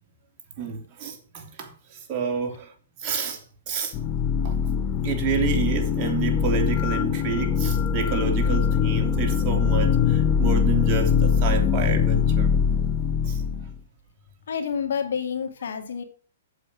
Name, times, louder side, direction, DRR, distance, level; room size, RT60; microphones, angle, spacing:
voice 1, 0.6-2.7 3.0-3.9 4.4-4.6 5.0-12.5 13.2-13.7, right 6 dB, 35° right, 2.9 m, -29 dB
sound 1, 3.9-13.8, left 7 dB, 35° left, 0.7 m, -22 dB
sound 2, 6.3-12.6, right 4 dB, 10° right, 1.2 m, -43 dB
voice 2, 14.5-16.0, left 7 dB, 75° left, 2.3 m, -28 dB
8.2 x 7.2 x 6.3 m
hypercardioid pair, 135°, 0 cm